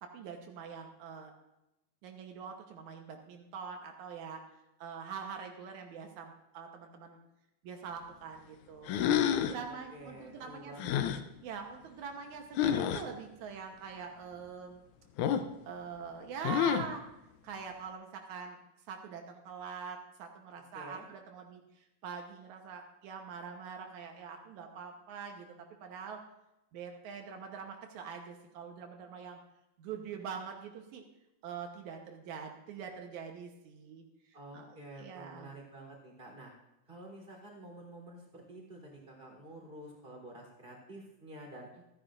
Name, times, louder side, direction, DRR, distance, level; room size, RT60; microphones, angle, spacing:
voice 1, 0.0-1.3 2.0-4.4 4.8-7.2 7.6-8.9 9.2-10.9 11.4-14.8 15.7-17.1 17.4-18.6 18.9-25.6 25.8-26.2 26.7-29.4 29.8-31.0 31.4-34.0 34.5-35.5, right 6 dB, 80° right, 3 dB, 2.4 m, -44 dB
sound 1, 8.9-9.6 10.8-11.2 12.6-13.0 15.2-15.5 16.4-17.0, left 9 dB, 90° left, 2.2 m, -29 dB
voice 2, 9.6-11.0 20.7-21.1 34.3-36.5 36.9-41.7, right 1 dB, 15° right, -1 dB, 3.6 m, -49 dB
28.0 x 9.8 x 2.6 m, 0.91 s
omnidirectional pair, 3.4 m